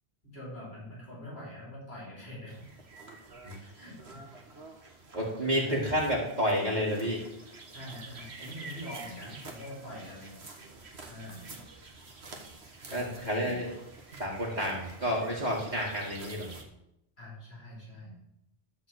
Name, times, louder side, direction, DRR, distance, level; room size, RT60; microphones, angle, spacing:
voice 1, 0.2-2.6 3.6-4.2 5.4-5.8 7.7-10.4 11.1-11.5 12.9-13.6 17.2-18.1, left 1 dB, 80° left, -6 dB, 4.5 m, -44 dB
sound 1, 2.5-16.6, right 3 dB, 90° right, 1.8 m, -48 dB
voice 2, 5.1-7.2 12.9-13.7 14.2-16.5, equal, 45° right, -5 dB, 2.3 m, -30 dB
12.5 x 4.5 x 8.0 m, 0.83 s
omnidirectional pair, 1.1 m